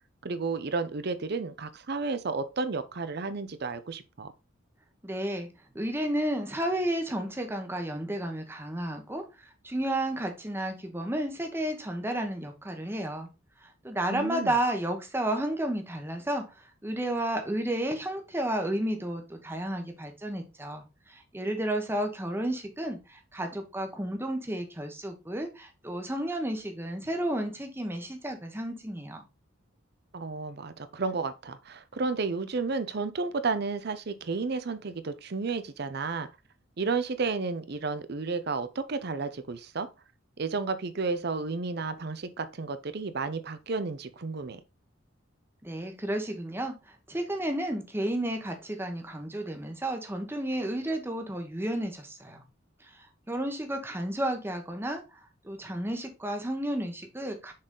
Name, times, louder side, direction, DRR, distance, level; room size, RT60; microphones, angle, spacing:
voice 1, 0.2-4.3 14.1-14.5 30.1-36.3 36.8-39.9 40.4-44.6, right 4 dB, 50° right, 0.6 m, -32 dB
voice 2, 5.0-5.5 5.7-13.3 13.6-29.2 45.6-46.8 47.1-52.4 52.8-52.9 53.3-55.0 55.4-57.5, right 1 dB, 10° right, 1.0 m, -32 dB
6.3 x 4.0 x 3.7 m
head